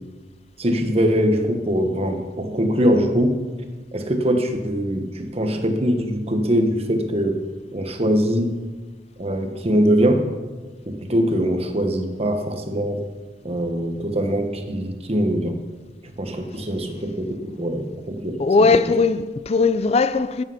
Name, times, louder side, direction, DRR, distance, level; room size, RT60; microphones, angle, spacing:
voice 1, 0.6-3.5 3.9-7.4 7.7-8.6 9.2-10.3 10.9-13.0 13.4-15.6 16.0-18.4, equal, 35° right, 1.2 m, -22 dB
voice 2, 18.4-20.4, left 4 dB, 35° left, 0.4 m, -18 dB
13.5 x 7.8 x 5.7 m
head